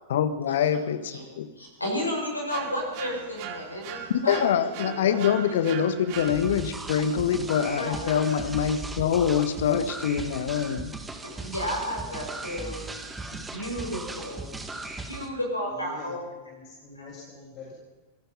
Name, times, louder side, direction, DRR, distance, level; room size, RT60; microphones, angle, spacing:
voice 1, 0.1-1.5 4.3-10.9, left 8 dB, 60° left, 11 dB, 1.6 m, -25 dB
voice 2, 1.6-5.2 5.5-5.6 7.7-8.1 11.2-12.8 13.5-14.5 15.1-16.2 17.0-17.1, equal, 85° left, -1 dB, 7.4 m, -32 dB
sound 1, 2.5-6.8, right 8 dB, 45° right, 2.1 m, -39 dB
sound 2, 6.1-15.3, right 3 dB, 10° right, 2.3 m, -38 dB
voice 3, 14.7-15.3 15.7-16.1 16.5-17.7, left 3 dB, 35° left, -3 dB, 7.4 m, -46 dB
26.0 x 19.0 x 5.7 m, 1.3 s
figure-of-eight pair, 90°, 0 cm